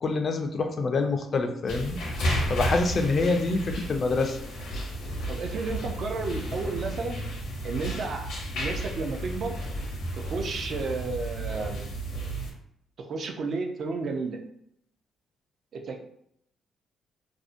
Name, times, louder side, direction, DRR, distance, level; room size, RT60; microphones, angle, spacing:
voice 1, 0.0-2.0 2.5-4.4 4.7-4.8, left 3 dB, 45° left, 6 dB, 0.3 m, -26 dB
sound 1, 1.7-12.5, equal, 80° left, 0.6 m, -33 dB
voice 2, 5.3-7.2 7.6-8.3 8.5-9.5 10.3-11.8 13.1-14.4, right 4 dB, 60° right, 4 dB, 0.4 m, -32 dB
2.5 x 2.0 x 2.5 m, 0.73 s
cardioid pair, 90°, 0 cm